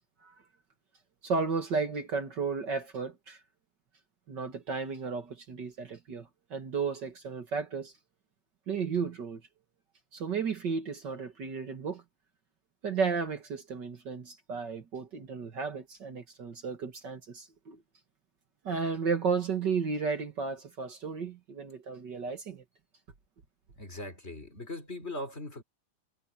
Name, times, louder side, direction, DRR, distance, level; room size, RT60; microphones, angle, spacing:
voice 1, 1.2-3.4 4.3-7.9 8.7-9.4 10.1-12.0 12.8-17.8 18.6-22.6, right 5 dB, 55° right, 2.3 m, -33 dB
voice 2, 23.8-25.6, left 1 dB, 30° left, 4.0 m, -40 dB
omnidirectional pair, 2.4 m